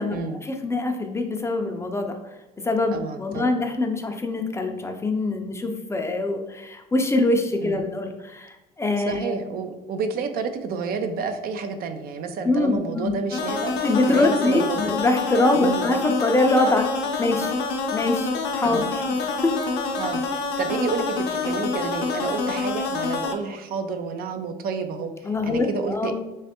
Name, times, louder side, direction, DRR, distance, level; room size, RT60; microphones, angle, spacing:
voice 1, 0.0-2.2 2.6-9.4 12.4-13.1 13.8-16.9 17.2-17.5 17.9-19.5 25.2-26.1, left 2 dB, 15° left, 4 dB, 0.4 m, -24 dB
voice 2, 2.9-3.6 7.6-7.8 9.0-14.8 15.5-15.9 18.6-18.9 20.0-26.1, right 5 dB, 65° right, 8 dB, 0.4 m, -30 dB
sound 1, 13.3-23.3, left 4 dB, 85° left, 0.5 m, -27 dB
3.2 x 3.2 x 2.8 m, 1.0 s
cardioid pair, 110°, 17 cm